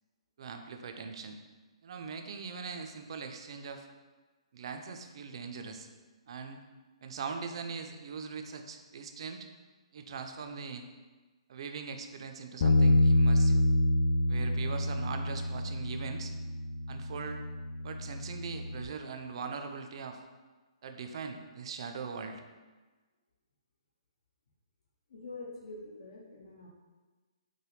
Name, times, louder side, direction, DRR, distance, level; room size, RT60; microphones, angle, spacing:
voice 1, 0.4-1.4 1.8-3.9 4.5-5.9 6.3-6.6 7.0-9.5 9.9-10.8 11.5-13.6 14.3-16.3 16.9-17.4 17.8-20.2 20.8-22.4, right 5 dB, 55° right, 5 dB, 0.4 m, -41 dB
Bass guitar, 12.6-18.9, left 1 dB, 50° left, 0.3 m, -27 dB
voice 2, 25.1-26.7, left 2 dB, 65° left, -3 dB, 1.1 m, -45 dB
4.9 x 2.2 x 3.1 m, 1.3 s
hypercardioid pair, 140°, 3 cm